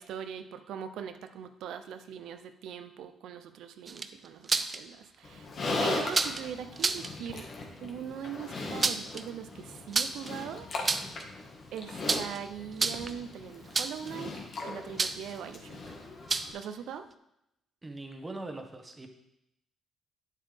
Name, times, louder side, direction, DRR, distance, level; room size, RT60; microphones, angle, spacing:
voice 1, 0.0-5.5 5.8-7.5 7.8-10.7 11.7-15.9 16.5-17.1, right 8 dB, 80° right, 9 dB, 0.6 m, -41 dB
sound 1, 3.9-4.8 6.1-6.4 6.8-7.1 8.6-9.2 9.9-10.3 10.7-11.2 12.1-12.4 12.7-13.2 13.7-14.1 15.0-15.3 16.3-16.6, right 4 dB, 35° right, 0.5 m, -29 dB
Livestock farm animals working animals, 5.2-16.5, left 2 dB, 55° left, 1.6 m, -38 dB
voice 2, 17.8-19.1, right 2 dB, 20° right, 5 dB, 1.2 m, -41 dB
9.3 x 7.4 x 3.5 m, 0.81 s
cardioid pair, 90°, 0 cm